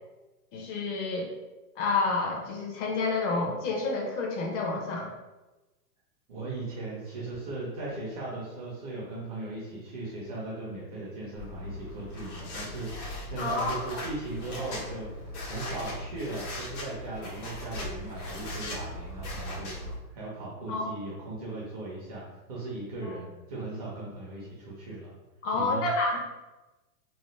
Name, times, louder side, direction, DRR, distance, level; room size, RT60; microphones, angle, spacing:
voice 1, 0.5-1.3 1.8-5.1 13.4-13.8 20.7-20.9 23.0-23.1 25.4-26.2, left 3 dB, 50° left, 0 dB, 0.9 m, -29 dB
voice 2, 6.3-19.8 20.1-22.2 22.5-25.1 25.5-25.9, right 2 dB, 25° right, -5 dB, 0.4 m, -38 dB
sound 1, 11.4-20.0, left 1 dB, 70° left, 1.2 m, -39 dB
2.9 x 2.0 x 3.1 m, 1.1 s
hypercardioid pair, 130°, 48 cm